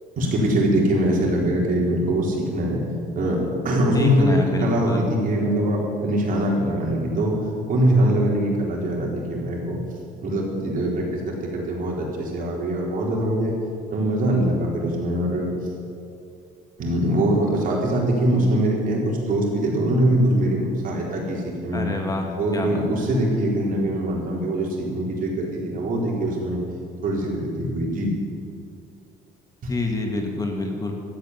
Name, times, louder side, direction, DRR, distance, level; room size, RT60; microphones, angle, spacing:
voice 1, 0.2-2.8 3.1-3.4 3.6-7.4 7.7-9.8 10.2-13.5 13.9-15.5 16.8-21.9 22.4-26.6 27.0-28.1 29.6-29.7, right 1 dB, 55° right, -2 dB, 4.2 m, -22 dB
voice 2, 3.9-5.1 21.7-22.9 29.7-30.9, left 2 dB, 20° left, 2 dB, 2.0 m, -27 dB
13.5 x 8.4 x 9.7 m, 2.5 s
cardioid pair, 110°, 17 cm